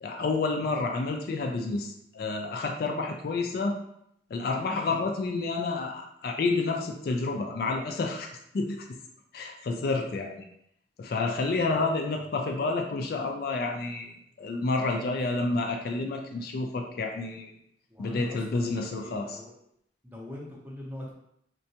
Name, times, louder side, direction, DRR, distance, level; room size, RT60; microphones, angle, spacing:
voice 1, 0.0-3.8 4.3-8.3 8.5-8.8 9.3-10.4 11.0-17.5 18.0-19.4, left 3 dB, 50° left, 3 dB, 0.3 m, -29 dB
voice 2, 11.2-11.8 14.9-15.2 17.9-19.6 20.0-21.1, left 1 dB, 10° right, -4 dB, 0.6 m, -43 dB
3.7 x 2.2 x 2.7 m, 0.75 s
head